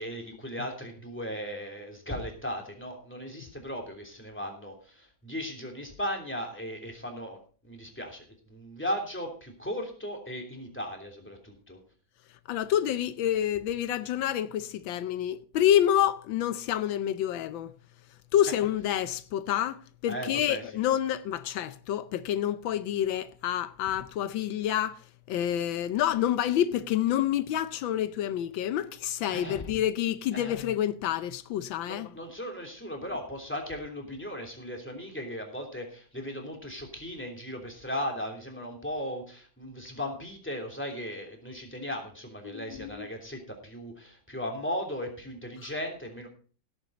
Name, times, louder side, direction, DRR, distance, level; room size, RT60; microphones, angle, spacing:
voice 1, 0.0-7.4 7.7-11.8 20.1-20.6 29.3-29.6 30.3-30.5 31.9-46.3, equal, 5° left, 3.0 m, -37 dB
voice 2, 12.5-17.7 18.3-25.0 25.3-32.1 42.4-43.1, left 11 dB, 85° left, 1.5 m, -28 dB
17.0 x 8.4 x 3.9 m
omnidirectional pair, 2.0 m